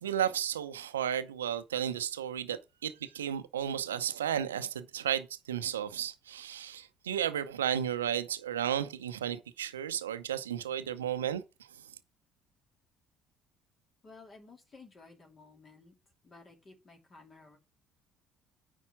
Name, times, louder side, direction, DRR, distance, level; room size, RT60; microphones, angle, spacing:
voice 1, 0.0-11.4, right 9 dB, 85° right, 0.7 m, -33 dB
voice 2, 14.0-15.9 16.2-17.6, left 3 dB, 40° left, 2.7 m, -54 dB
9.8 x 4.2 x 5.9 m
hypercardioid pair, 55°, 0 cm